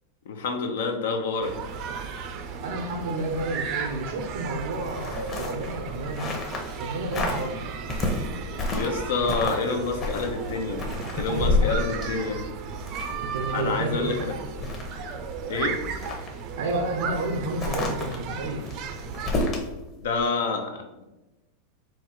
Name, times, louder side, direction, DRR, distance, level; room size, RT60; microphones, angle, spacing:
voice 1, 0.3-1.5 8.7-10.8 11.1-12.4 13.5-14.3 15.5-15.8 19.4-19.5 20.0-21.0, left 4 dB, 80° left, 5 dB, 0.7 m, -28 dB
sound 1, 1.4-19.3, right 5 dB, 40° right, 0.4 m, -35 dB
voice 2, 2.6-6.3 6.8-7.6 11.3-11.7 13.2-14.2 16.6-18.6, right 2 dB, 90° right, 3 dB, 0.6 m, -31 dB
sound 2, 4.8-6.8 7.1-7.5 7.9-9.0 9.3-9.7 10.0-13.3 13.8-13.9 14.3-15.4 15.9-16.3 17.6-19.7 20.1-20.3, left 2 dB, 25° left, 0.8 m, -29 dB
4.2 x 2.5 x 4.3 m, 1.0 s
supercardioid pair, 155°, 0 cm